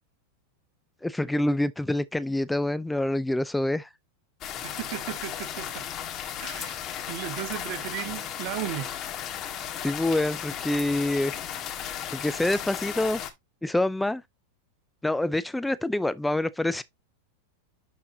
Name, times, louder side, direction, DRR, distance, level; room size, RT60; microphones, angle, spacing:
voice 1, 1.0-3.9 9.8-11.3 12.1-13.2 13.6-14.2 15.0-16.8, left 1 dB, 5° left, 0.4 m, -26 dB
sound 1, 4.4-13.3, left 10 dB, 40° left, 1.8 m, -35 dB
voice 2, 4.6-5.8 6.4-6.8 7.1-8.9, right 14 dB, 55° right, 1.4 m, -35 dB
11.0 x 4.3 x 2.8 m
hypercardioid pair, 110°, 0 cm